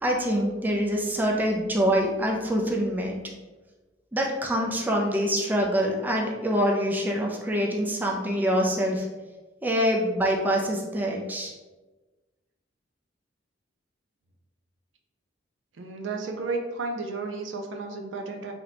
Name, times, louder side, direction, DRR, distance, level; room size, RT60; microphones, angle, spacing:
voice 1, 0.0-3.2 4.1-9.1 9.6-11.5, equal, 10° right, -1 dB, 0.3 m, -25 dB
voice 2, 15.8-18.5, right 3 dB, 75° right, 3 dB, 0.5 m, -32 dB
2.9 x 2.2 x 3.9 m, 1.2 s
head